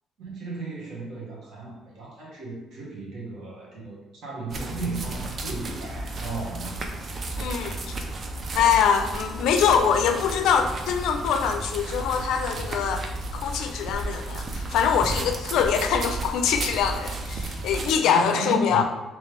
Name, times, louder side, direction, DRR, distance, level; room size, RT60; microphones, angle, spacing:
voice 1, 0.2-6.8 18.0-18.8, right 2 dB, 50° right, -5 dB, 1.3 m, -34 dB
sound 1, 4.5-18.0, right 2 dB, 30° right, 0.4 m, -33 dB
voice 2, 7.4-7.9 8.5-13.1 13.3-18.8, left 7 dB, 70° left, 6 dB, 0.4 m, -24 dB
3.1 x 3.1 x 3.3 m, 1.1 s
cardioid pair, 175°, 0 cm